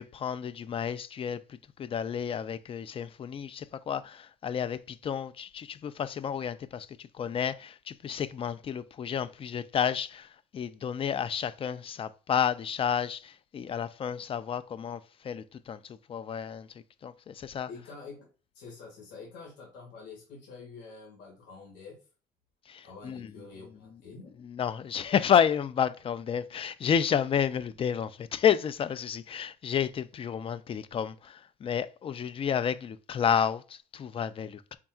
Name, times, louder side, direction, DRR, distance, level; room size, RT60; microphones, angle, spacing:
voice 1, 0.0-16.7 17.0-17.7 22.7-23.3 24.4-34.8, left 8 dB, 35° left, 0.3 m, -31 dB
voice 2, 17.7-18.3 18.5-22.0 22.8-24.3, left 4 dB, 85° left, 2.2 m, -47 dB
4.2 x 3.5 x 2.3 m
cardioid pair, 110°, 17 cm